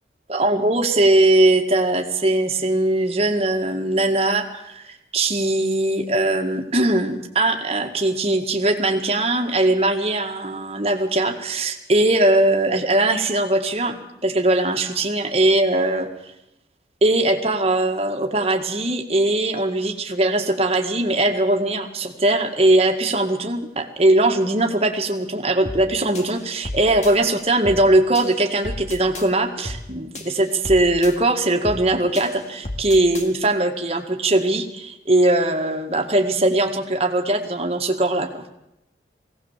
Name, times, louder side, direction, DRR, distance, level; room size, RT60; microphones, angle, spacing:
voice 1, 0.3-16.1 17.0-38.5, right 2 dB, 35° right, 3 dB, 1.9 m, -20 dB
sound 1, 25.7-25.9 26.2-27.1 27.7-27.9 28.2-29.3 29.7-29.9 30.2-31.1 31.7-31.9 32.2-33.3, left 1 dB, 40° left, 2.1 m, -33 dB
20.5 x 17.0 x 7.5 m, 0.86 s
head